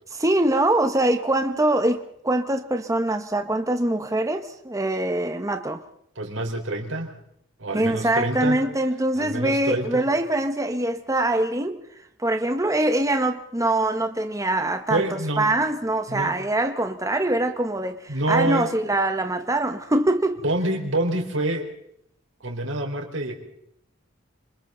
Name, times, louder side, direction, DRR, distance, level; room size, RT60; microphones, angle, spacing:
voice 1, 0.1-5.8 7.7-11.8 12.2-20.4, right 1 dB, 15° right, 1.2 m, -23 dB
voice 2, 6.2-7.1 7.6-8.6 9.2-10.1 14.9-15.5 16.1-16.4 18.1-18.8 20.4-21.7 22.4-23.3, right 2 dB, 85° right, 4.5 m, -26 dB
27.5 x 26.5 x 4.0 m
head